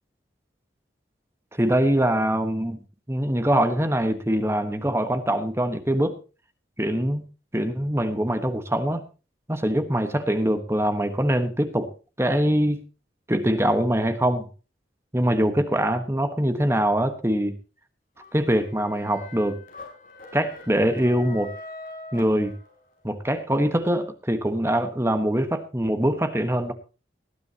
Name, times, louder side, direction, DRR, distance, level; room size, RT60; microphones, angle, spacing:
voice 1, 1.5-2.8 3.1-6.2 6.8-7.2 7.5-9.0 9.5-11.9 12.2-12.8 13.3-14.5 15.1-17.6 18.3-19.6 20.3-21.6 22.1-22.5 23.0-26.7, right 1 dB, 15° right, 9 dB, 1.3 m, -23 dB
sound 1, 18.2-23.0, left 2 dB, 45° left, 5.2 m, -43 dB
19.5 x 11.5 x 2.9 m, 0.32 s
head